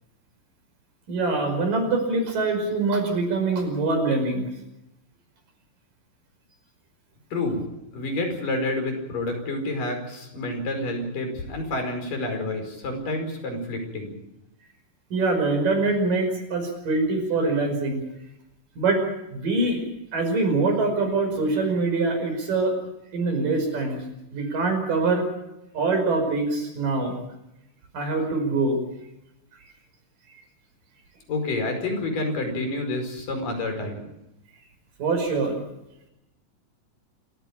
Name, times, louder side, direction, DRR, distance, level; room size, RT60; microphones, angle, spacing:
voice 1, 1.1-4.5 15.1-18.0 18.8-19.0 19.3-19.8 20.1-22.7 23.1-24.0 24.3-25.3 25.7-27.2 27.9-28.8 30.3-30.4 35.0-35.6, right 3 dB, 85° right, 5 dB, 7.1 m, -24 dB
voice 2, 7.3-7.7 7.9-14.1 31.3-34.0, left 2 dB, 80° left, 5 dB, 6.6 m, -29 dB
27.0 x 15.0 x 8.7 m, 0.88 s
omnidirectional pair, 3.8 m